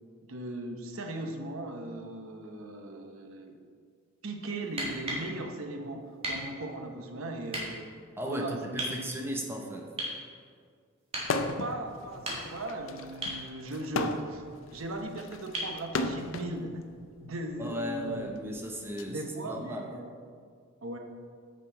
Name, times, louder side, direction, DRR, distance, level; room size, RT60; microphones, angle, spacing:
voice 1, 0.3-3.6 4.2-7.9 8.3-9.5 11.6-14.4 14.7-16.8 17.2-18.3 19.1-20.1 20.8-21.0, right 2 dB, 75° right, 4 dB, 0.9 m, -38 dB
sound 1, 4.6-5.3 6.2-6.4 7.5-7.7 8.8-9.0 10.0-10.2 11.1-11.3 12.1-12.7 13.2-13.4 15.5-15.8 17.6-17.7, right 1 dB, 30° right, 1.6 m, -35 dB
voice 2, 8.2-9.9 17.6-19.9, equal, 10° right, 2 dB, 0.7 m, -36 dB
sound 2, 11.2-11.8 12.1-16.5 17.4-19.0, left 3 dB, 65° left, 0.5 m, -34 dB
6.7 x 6.3 x 4.5 m, 2.1 s
head